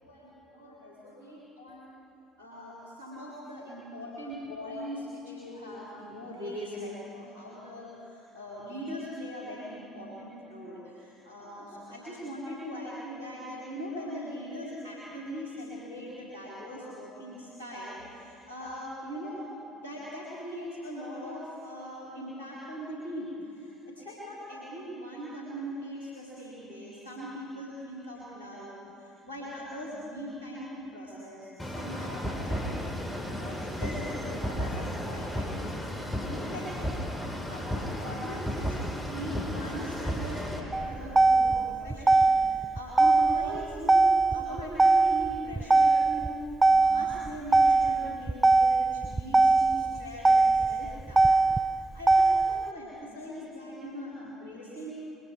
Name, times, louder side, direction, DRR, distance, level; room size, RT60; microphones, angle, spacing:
voice 1, 0.0-1.9 2.4-37.0 37.5-51.3 51.8-54.9, equal, 85° right, -6 dB, 3.9 m, -40 dB
sound 1, 31.6-40.6, equal, 15° left, 4.0 m, -34 dB
Motor vehicle (road), 40.7-52.7, right 3 dB, 15° right, 0.4 m, -22 dB
27.0 x 22.5 x 4.7 m, 2.8 s
figure-of-eight pair, 55°, 0 cm